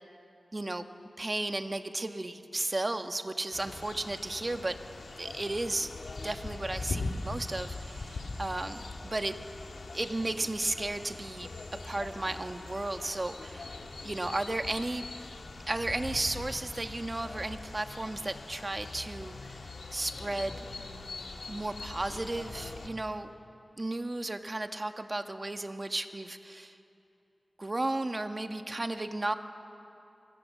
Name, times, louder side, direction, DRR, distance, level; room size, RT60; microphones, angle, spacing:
voice 1, 0.5-0.8 1.2-4.7 5.2-5.9 6.2-9.3 9.9-11.5 11.8-13.7 14.0-15.1 15.7-20.6 21.5-23.3 23.8-26.8 27.6-29.3, right 2 dB, 30° right, 7 dB, 1.5 m, -34 dB
sound 1, 3.5-22.9, left 3 dB, 85° left, 2.4 m, -42 dB
29.5 x 25.5 x 7.5 m, 2.7 s
wide cardioid pair, 80°, 0 cm